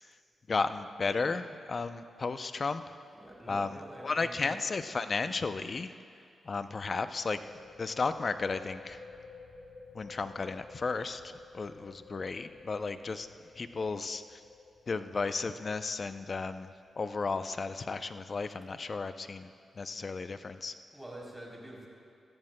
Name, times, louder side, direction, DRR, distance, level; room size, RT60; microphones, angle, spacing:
voice 1, 0.5-2.9 3.5-3.7 4.0-5.9 6.4-7.4 7.8-9.0 9.9-13.3 13.6-14.4 14.9-19.5 19.8-20.7, left 4 dB, 45° left, 10 dB, 0.5 m, -34 dB
voice 2, 3.1-4.6 20.9-21.9, right 1 dB, 5° right, -3 dB, 3.5 m, -46 dB
sound 1, 6.9-18.2, left 4 dB, 70° left, 1.7 m, -54 dB
18.5 x 14.5 x 2.2 m, 2.5 s
cardioid pair, 70°, 0 cm